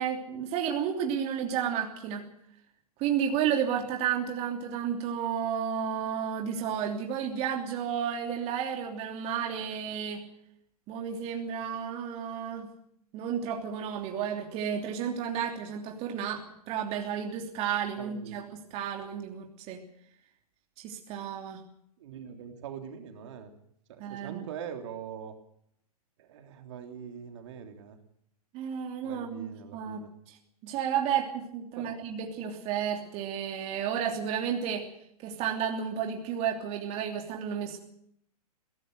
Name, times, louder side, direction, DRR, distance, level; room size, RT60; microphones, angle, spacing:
voice 1, 0.0-2.2 3.0-10.2 10.9-12.7 13.1-19.8 20.8-21.6 24.0-24.4 28.5-30.4 30.6-34.9 35.2-37.8, right 8 dB, 30° right, 3 dB, 3.0 m, -32 dB
voice 2, 18.0-18.4 22.0-23.5 23.9-25.3 26.2-28.0 29.0-30.1 31.8-32.0, right 8 dB, 50° right, 5 dB, 3.3 m, -43 dB
22.0 x 17.5 x 6.6 m, 0.71 s
figure-of-eight pair, 115°, 20 cm